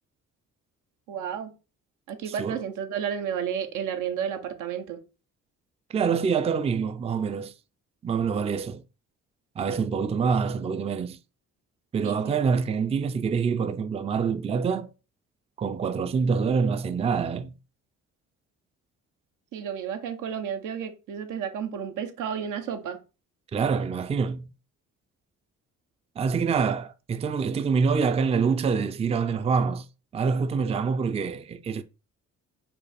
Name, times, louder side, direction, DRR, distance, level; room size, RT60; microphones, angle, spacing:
voice 1, 1.1-1.5 2.1-5.0 12.0-12.4 19.5-23.0, right 8 dB, 90° right, 0.8 m, -32 dB
voice 2, 2.3-2.6 5.9-7.5 8.0-8.8 9.6-11.2 11.9-14.9 15.6-17.5 23.5-24.5 26.2-29.9 30.1-31.8, right 5 dB, 20° right, 0.3 m, -26 dB
5.4 x 2.3 x 4.1 m
cardioid pair, 90°, 30 cm